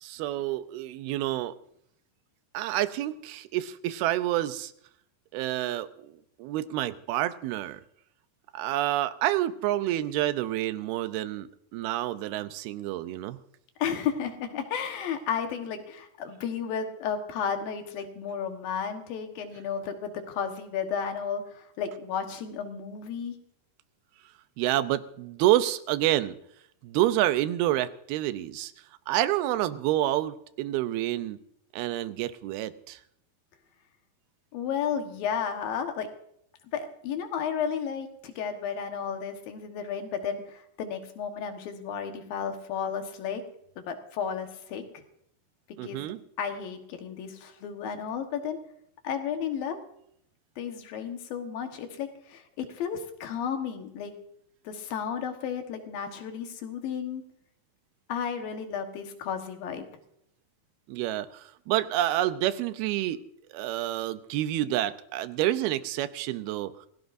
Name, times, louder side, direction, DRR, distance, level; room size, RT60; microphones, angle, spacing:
voice 1, 0.0-1.6 2.5-4.7 5.3-7.8 8.5-11.5 11.7-13.4 24.6-26.4 26.8-28.7 29.1-31.4 31.7-33.0 45.8-46.2 60.9-63.2 63.5-66.9, right 14 dB, 85° right, 12 dB, 2.6 m, -28 dB
voice 2, 13.8-23.4 34.5-36.1 36.7-43.4 43.8-45.0 45.8-46.1 46.4-48.6 49.0-49.8 50.6-54.1 54.6-57.2 58.1-59.9, left 7 dB, 70° left, 5 dB, 3.1 m, -33 dB
27.0 x 16.5 x 2.6 m, 0.72 s
omnidirectional pair, 4.4 m